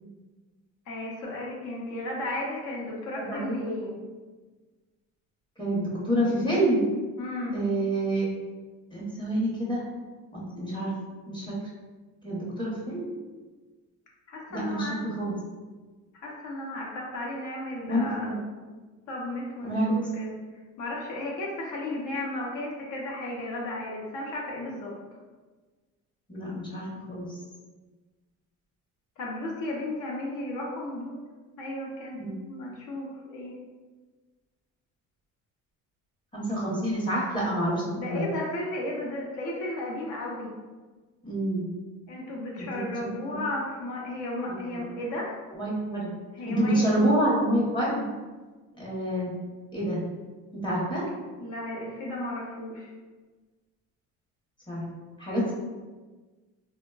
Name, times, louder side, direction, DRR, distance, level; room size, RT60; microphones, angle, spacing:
voice 1, 0.9-3.9 7.2-7.6 14.3-15.0 16.2-18.4 19.1-20.3 20.8-24.9 29.2-31.2 31.6-32.2 32.4-33.5 37.9-40.5 42.1-45.3 46.3-47.0 51.4-52.9, left 1 dB, 65° left, -3 dB, 0.8 m, -34 dB
voice 2, 3.2-3.6 5.6-6.8 7.5-8.3 8.9-9.8 10.3-10.9 11.3-11.5 12.2-13.1 14.5-15.4 17.9-18.4 19.6-19.9 26.3-27.3 32.1-32.4 36.3-38.2 41.2-41.7 42.6-43.4 44.7-44.8 45.6-46.1 46.5-48.0 48.8-49.3 49.7-50.0 50.6-51.0 54.7-54.8 55.2-55.5, right 1 dB, 15° left, -6 dB, 0.8 m, -27 dB
3.4 x 2.1 x 2.2 m, 1.3 s
cardioid pair, 130°, 33 cm